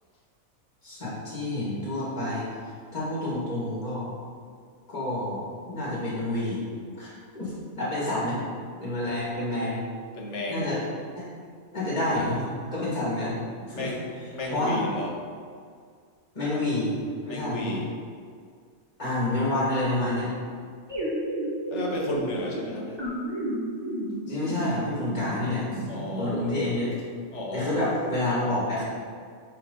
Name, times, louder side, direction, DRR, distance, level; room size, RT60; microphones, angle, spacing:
voice 1, 0.8-2.5 2.9-4.1 4.9-6.6 7.0-8.4 8.8-9.8 10.5-10.8 11.2-11.3 11.7-12.4 12.7-13.9 14.5-14.8 16.3-17.0 17.2-17.8 19.0-20.3 24.3-25.8 26.1-26.9 27.5-28.8, left 1 dB, 30° left, -7 dB, 2.0 m, -28 dB
voice 2, 10.1-10.7 13.7-14.1 14.3-15.1 17.3-17.9 21.7-23.0 25.9-26.5 27.3-27.8, left 1 dB, 60° left, -1 dB, 1.4 m, -32 dB
sound 1, 20.9-26.4, right 1 dB, 20° right, 1.7 m, -33 dB
9.7 x 4.2 x 3.9 m, 2.1 s
omnidirectional pair, 1.4 m